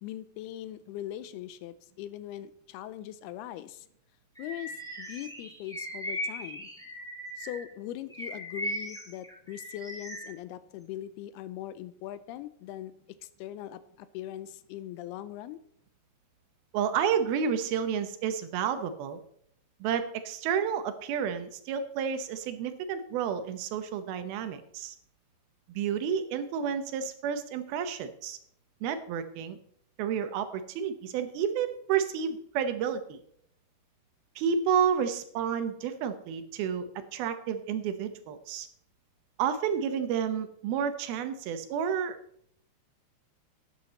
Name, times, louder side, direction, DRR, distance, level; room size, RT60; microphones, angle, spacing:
voice 1, 0.0-3.9 4.4-6.7 7.4-12.9 13.2-15.6, left 12 dB, 90° left, 15 dB, 2.6 m, -41 dB
Bird vocalization bird call bird song, 4.4-7.7 8.1-10.3, equal, ahead, 1.6 m, -38 dB
voice 2, 16.7-19.2 19.8-25.0 25.7-28.4 28.8-29.6 30.0-33.2 34.4-36.9 37.1-38.7 39.4-42.2, right 7 dB, 75° right, 9 dB, 2.7 m, -30 dB
12.0 x 9.5 x 4.1 m, 0.67 s
omnidirectional pair, 4.5 m